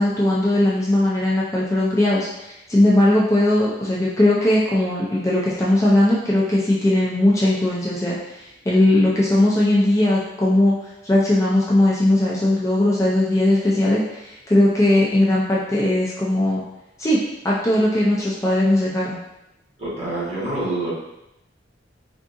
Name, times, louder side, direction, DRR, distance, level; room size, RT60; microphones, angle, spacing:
voice 1, 0.0-8.2 8.7-10.7 11.0-16.6 17.0-17.2 17.4-19.2, left 1 dB, 15° left, -6 dB, 0.4 m, -19 dB
voice 2, 19.8-20.9, right 2 dB, 35° right, -8 dB, 1.2 m, -26 dB
3.7 x 2.4 x 2.5 m, 0.88 s
head